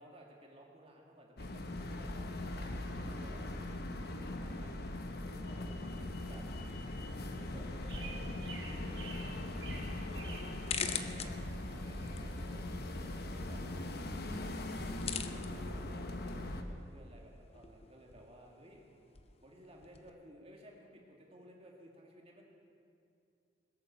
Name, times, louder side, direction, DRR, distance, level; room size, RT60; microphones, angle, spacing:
voice 1, 0.0-6.5 7.3-13.6 15.3-18.8 19.4-22.4, equal, 30° right, 0 dB, 2.2 m, -57 dB
sound 1, 1.4-16.6, left 1 dB, 55° left, 1.0 m, -40 dB
sound 2, 5.8-13.2, right 3 dB, 75° right, 4.7 m, -53 dB
sound 3, 10.4-20.1, left 7 dB, 35° left, 0.6 m, -46 dB
21.0 x 8.3 x 6.9 m, 2.5 s
head